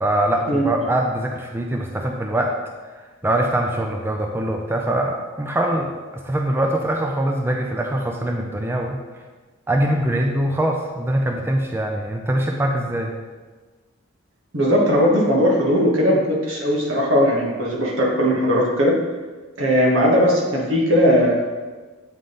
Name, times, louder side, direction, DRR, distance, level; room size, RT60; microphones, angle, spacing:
voice 1, 0.0-2.6 3.2-9.0 9.7-13.1, right 1 dB, 10° right, 1 dB, 0.4 m, -23 dB
voice 2, 14.5-18.9 19.6-21.4, equal, 75° right, -2 dB, 1.4 m, -18 dB
7.7 x 3.6 x 3.9 m, 1.3 s
head